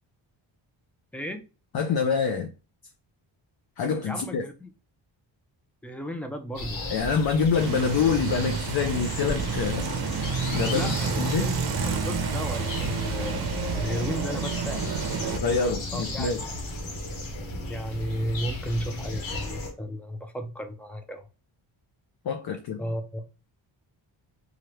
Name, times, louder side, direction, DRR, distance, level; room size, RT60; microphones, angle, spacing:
voice 1, 1.7-2.5 3.8-4.4 6.9-10.1 10.5-11.5 15.3-16.5 22.2-22.8, left 5 dB, 50° left, 0.5 m, -26 dB
voice 2, 4.0-4.7 5.8-6.8 10.7-13.4 13.8-14.9 15.9-16.4 17.7-21.3 22.8-23.2, equal, 5° left, 0.4 m, -34 dB
sound 1, 6.5-19.7, left 1 dB, 70° left, 1.2 m, -35 dB
sound 2, 7.6-15.4, right 5 dB, 50° right, 0.7 m, -30 dB
3.1 x 2.5 x 2.9 m
cardioid pair, 110°, 48 cm